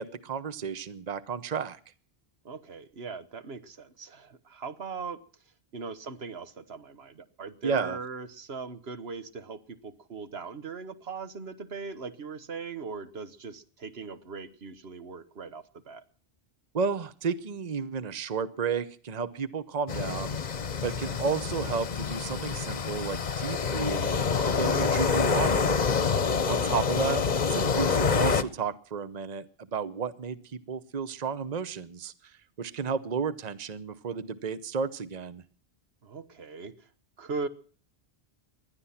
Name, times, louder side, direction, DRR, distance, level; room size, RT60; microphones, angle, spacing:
voice 1, 0.0-1.8 7.6-8.0 16.7-20.4 20.8-25.8 26.5-35.4, right 5 dB, 45° right, 15 dB, 1.0 m, -32 dB
voice 2, 2.4-5.2 5.7-16.0 26.1-26.4 36.0-36.9 37.2-37.5, right 4 dB, 85° right, 12 dB, 1.5 m, -39 dB
sound 1, 19.9-28.4, left 5 dB, 45° left, 1.0 m, -27 dB
20.0 x 12.5 x 5.8 m, 0.42 s
omnidirectional pair, 1.0 m